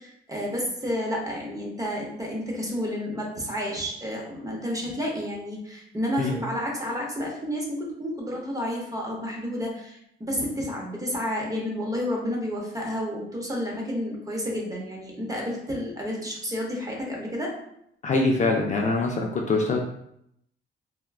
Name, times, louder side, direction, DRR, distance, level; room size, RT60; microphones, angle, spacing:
voice 1, 0.0-17.5, equal, 15° right, -1 dB, 0.9 m, -30 dB
voice 2, 18.0-19.8, left 3 dB, 40° left, 1 dB, 0.4 m, -23 dB
3.4 x 2.2 x 2.3 m, 0.74 s
cardioid pair, 90°, 20 cm